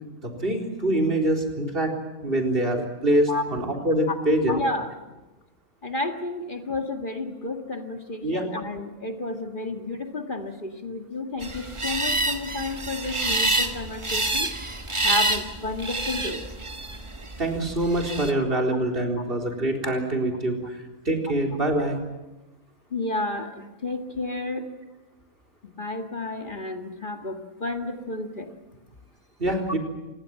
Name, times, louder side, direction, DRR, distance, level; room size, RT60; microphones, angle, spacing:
voice 1, 0.2-2.0 2.2-4.6 8.2-8.5 17.4-20.8 21.1-22.0 29.4-29.8, right 1 dB, 40° right, 1 dB, 4.2 m, -24 dB
voice 2, 4.4-4.9 5.8-14.5 15.0-16.4 18.5-18.6 19.8-19.9 22.9-24.6 25.6-28.5, left 2 dB, 35° left, 4 dB, 2.1 m, -31 dB
sound 1, 11.4-18.3, right 2 dB, 20° right, 1.5 m, -28 dB
27.5 x 20.0 x 7.6 m, 1.1 s
omnidirectional pair, 1.5 m